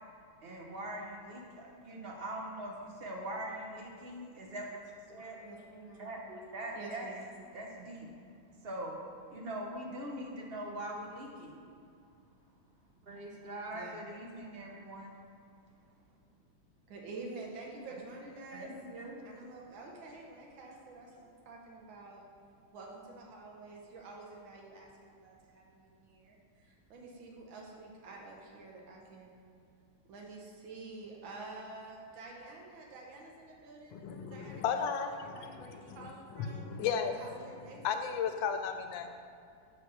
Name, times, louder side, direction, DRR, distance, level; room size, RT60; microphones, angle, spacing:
voice 1, 0.4-4.8 5.1-5.4 6.0-7.1 7.5-8.1 8.6-8.9 9.3-11.6 13.0-15.1 17.9-18.0 18.5-19.2, right 1 dB, 50° right, -1 dB, 0.7 m, -42 dB
voice 2, 5.4-6.1 6.8-7.2 13.7-14.0 16.9-18.7 19.0-22.2 22.7-29.4 30.1-36.7 37.1-38.2, right 3 dB, 80° right, -1 dB, 1.9 m, -49 dB
voice 3, 33.9-37.2 37.8-39.1, left 7 dB, 80° left, 7 dB, 1.3 m, -35 dB
6.2 x 4.2 x 6.3 m, 2.5 s
omnidirectional pair, 2.1 m